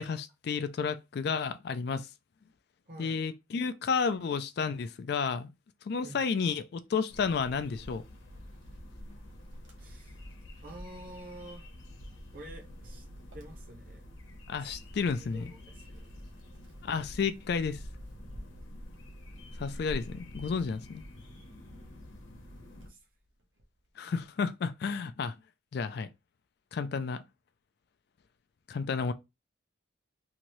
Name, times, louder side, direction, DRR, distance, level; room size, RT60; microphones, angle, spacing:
voice 1, 0.0-2.1 3.0-5.5 5.8-8.0 14.5-15.4 16.8-17.8 19.6-21.0 24.0-25.3 25.7-26.1 26.7-27.2 28.7-29.1, left 5 dB, 55° left, 0.3 m, -31 dB
voice 2, 2.9-3.2 6.0-6.2 9.8-10.2 10.6-11.7 12.3-13.0 13.3-14.0 14.6-14.8 15.2-16.1 22.2-23.1, right 1 dB, 45° right, 0.7 m, -49 dB
sound 1, 7.1-22.9, left 1 dB, 85° left, 0.8 m, -48 dB
Wind, 7.7-21.8 22.3-23.8, equal, 75° right, 0.9 m, -51 dB
2.8 x 2.6 x 3.0 m
head